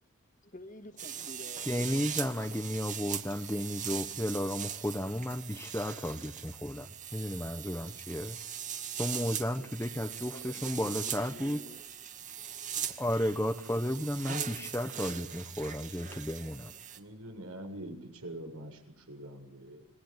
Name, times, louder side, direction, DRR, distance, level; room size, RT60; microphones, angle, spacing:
voice 1, 0.4-1.7 9.0-9.3 9.6-9.7 10.0-11.8, left 1 dB, 35° left, 9 dB, 2.1 m, -50 dB
sound 1, 1.0-17.0, right 8 dB, 35° right, 2.2 m, -40 dB
voice 2, 1.6-8.4 9.0-11.6 13.0-16.7, equal, 10° left, 5 dB, 1.0 m, -33 dB
voice 3, 17.0-19.8, right 1 dB, 90° right, 4 dB, 7.4 m, -44 dB
27.5 x 21.5 x 9.2 m, 0.77 s
head